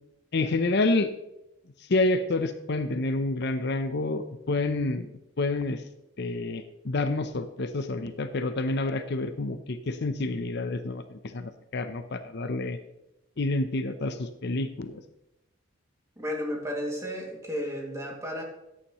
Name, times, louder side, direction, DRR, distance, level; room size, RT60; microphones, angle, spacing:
voice 1, 0.3-1.1 1.9-5.1 5.4-5.8 6.2-12.8 13.4-15.0, left 2 dB, 60° left, 10 dB, 0.7 m, -28 dB
voice 2, 16.2-18.4, equal, 15° right, 0 dB, 2.2 m, -33 dB
14.0 x 9.9 x 3.1 m, 0.88 s
head